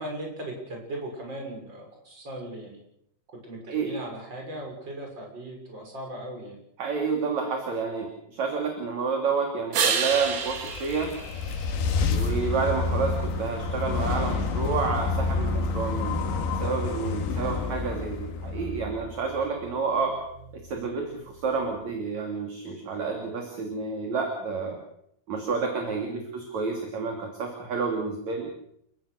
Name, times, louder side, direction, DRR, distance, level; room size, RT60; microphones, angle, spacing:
voice 1, 0.0-2.8 3.4-6.6 17.2-17.7 26.0-26.2, right 1 dB, 25° right, 1 dB, 7.0 m, -38 dB
voice 2, 3.7-4.0 6.8-11.1 12.1-20.2 20.5-24.8 25.3-28.5, right 4 dB, 45° right, 2 dB, 3.9 m, -29 dB
sound 1, 9.7-12.3 18.0-22.0, right 6 dB, 65° right, 4.0 m, -33 dB
sound 2, 10.3-19.5, left 4 dB, 85° left, 4.2 m, -29 dB
30.0 x 17.0 x 6.6 m, 0.73 s
omnidirectional pair, 4.8 m